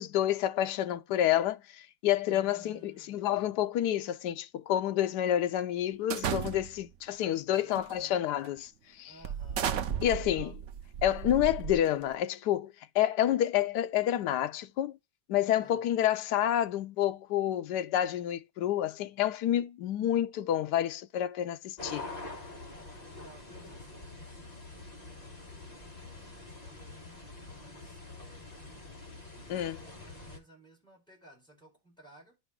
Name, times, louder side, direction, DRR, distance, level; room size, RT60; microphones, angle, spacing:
voice 1, 0.0-8.7 9.0-9.1 10.0-10.5 11.0-15.0 15.3-22.1 29.5-29.8, left 11 dB, 75° left, 1.1 m, -29 dB
voice 2, 2.2-3.7 7.2-8.3 9.0-10.6 15.6-15.9 22.8-32.4, right 2 dB, ahead, 4.8 m, -59 dB
sound 1, 6.1-6.9 7.7-8.0 8.4-8.6 9.2-12.1, right 8 dB, 60° right, 0.8 m, -35 dB
sound 2, 21.8-30.4, left 2 dB, 25° left, 1.2 m, -46 dB
11.0 x 5.0 x 3.6 m
omnidirectional pair, 1.9 m